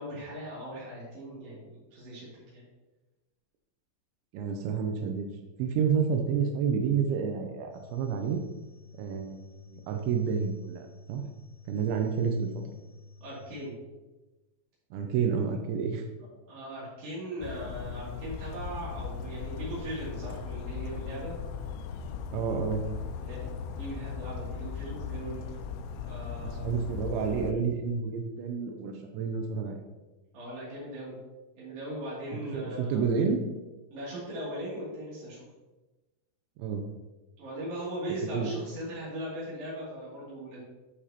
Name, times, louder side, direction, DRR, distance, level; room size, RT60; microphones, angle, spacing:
voice 1, 0.0-2.6 13.2-13.8 16.2-21.4 23.2-23.5 23.8-25.5 26.0-26.8 30.3-31.2 31.6-33.1 33.9-35.4 37.4-40.6, right 1 dB, 70° right, -8 dB, 4.6 m, -39 dB
voice 2, 4.3-5.3 5.6-8.4 9.0-11.2 11.7-12.5 14.9-16.0 22.3-22.8 26.6-29.8 32.3-33.4 36.6-36.8 38.3-38.5, right 6 dB, 85° right, 4 dB, 3.0 m, -29 dB
sound 1, 7.7-13.7, left 3 dB, 65° left, 1.9 m, -52 dB
Bird vocalization bird call bird song, 17.4-27.5, left 6 dB, 80° left, 2.5 m, -38 dB
12.5 x 5.0 x 2.9 m, 1.1 s
omnidirectional pair, 5.2 m